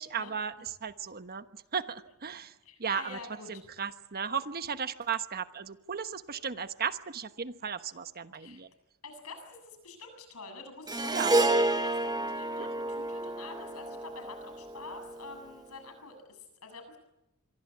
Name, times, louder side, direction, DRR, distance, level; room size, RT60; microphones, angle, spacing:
voice 1, 0.0-2.5 2.8-3.2 3.5-8.7 11.1-11.3 12.6-12.7, right 6 dB, 45° right, 10 dB, 1.2 m, -35 dB
voice 2, 2.4-3.6 8.3-8.6 9.0-17.0, left 3 dB, 80° left, 7 dB, 7.5 m, -47 dB
Harp, 10.9-15.3, right 2 dB, 20° right, 1.3 m, -30 dB
26.0 x 24.0 x 8.5 m, 0.92 s
head